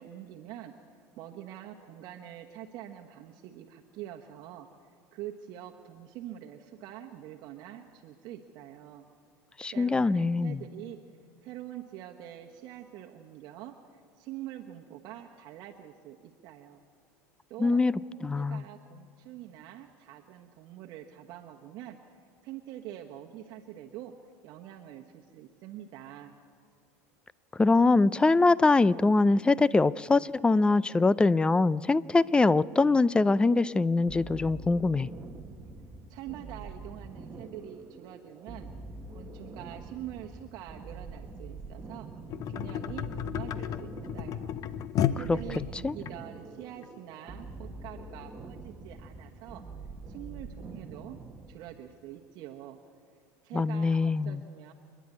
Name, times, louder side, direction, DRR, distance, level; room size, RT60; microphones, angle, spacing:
voice 1, 0.0-9.0 9.7-11.0 11.4-16.8 17.5-17.8 18.3-24.1 24.4-26.3 36.1-38.7 39.1-42.1 42.5-44.5 45.1-49.6 50.1-51.2 51.5-52.8 53.4-54.7, right 12 dB, 60° right, 2 dB, 1.2 m, -45 dB
voice 2, 9.6-10.6 17.6-17.9 18.2-18.6 27.6-35.1 45.3-45.4 45.8-45.9 53.5-54.4, left 3 dB, 10° left, 20 dB, 0.4 m, -23 dB
sound 1, 34.1-51.7, right 3 dB, 20° right, 1.4 m, -45 dB
sound 2, 42.3-46.1 46.8-46.9, left 10 dB, 45° left, 0.8 m, -32 dB
27.0 x 10.5 x 9.6 m, 2.2 s
supercardioid pair, 110°, 8 cm